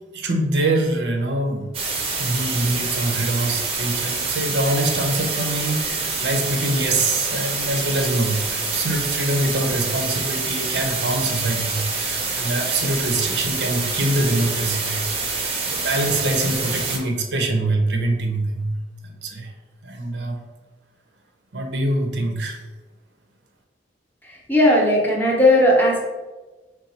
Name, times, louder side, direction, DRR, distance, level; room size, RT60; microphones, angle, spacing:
voice 1, 0.1-1.7 2.2-15.1 15.7-18.8 19.0-19.5 19.8-20.4 21.5-22.6, right 2 dB, 75° right, 3 dB, 0.6 m, -24 dB
sound 1, 1.7-17.0, right 4 dB, 35° right, 0.6 m, -26 dB
voice 2, 24.2-26.0, left 1 dB, 10° left, -3 dB, 0.7 m, -17 dB
3.9 x 2.3 x 4.2 m, 1.2 s
head